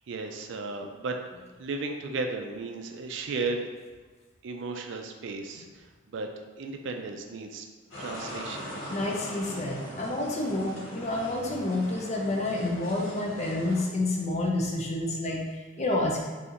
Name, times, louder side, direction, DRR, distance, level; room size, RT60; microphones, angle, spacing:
voice 1, 0.1-1.2 1.6-3.7 4.4-6.3 6.6-7.7 8.0-8.7, right 3 dB, 60° right, 4 dB, 0.3 m, -34 dB
sound 1, 7.9-13.8, equal, 75° left, 1.4 m, -40 dB
voice 2, 8.9-16.2, left 2 dB, 35° left, -1 dB, 0.4 m, -29 dB
4.1 x 2.7 x 2.5 m, 1.4 s
head